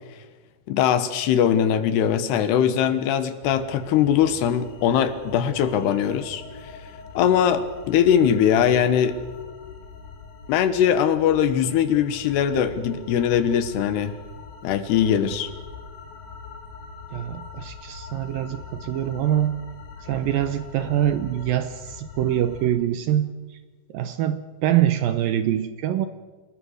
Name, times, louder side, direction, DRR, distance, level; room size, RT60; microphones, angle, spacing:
voice 1, 0.7-6.4 7.1-9.2 10.5-14.1 14.6-15.5, left 9 dB, 80° left, 11 dB, 3.3 m, -21 dB
sound 1, 3.4-22.7, left 5 dB, 60° left, 4.4 m, -42 dB
voice 2, 17.1-19.6 20.0-23.6 23.9-26.1, right 11 dB, 75° right, 11 dB, 2.2 m, -24 dB
28.0 x 20.0 x 6.6 m, 1.3 s
omnidirectional pair, 4.8 m